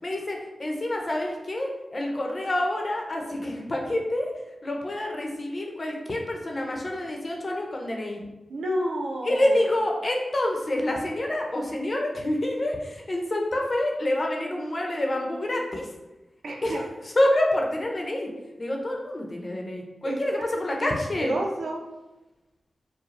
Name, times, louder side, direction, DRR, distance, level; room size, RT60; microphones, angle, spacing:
voice 1, 0.0-4.3 4.6-8.2 9.2-15.9 16.6-16.7 17.2-18.3 18.6-21.3, left 1 dB, 50° left, 0 dB, 0.9 m, -27 dB
voice 2, 8.5-9.7 16.4-16.8 20.0-21.9, right 1 dB, 80° right, 1 dB, 0.6 m, -31 dB
4.8 x 2.3 x 3.2 m, 1.0 s
cardioid pair, 40°, 0 cm